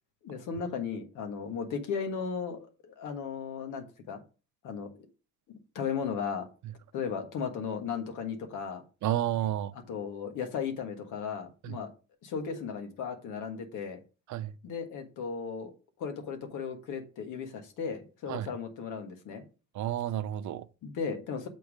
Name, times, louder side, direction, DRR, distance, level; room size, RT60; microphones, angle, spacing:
voice 1, 0.2-4.2 4.6-5.1 5.5-6.5 6.9-8.8 9.7-11.9 12.2-14.0 14.6-15.7 16.0-19.4 20.8-21.5, left 6 dB, 85° left, 1.6 m, -36 dB
voice 2, 9.0-9.7 11.6-11.8 14.3-14.5 18.3-18.5 19.7-20.6, right 12 dB, 70° right, 0.6 m, -31 dB
6.9 x 4.6 x 4.9 m
cardioid pair, 90°, 30 cm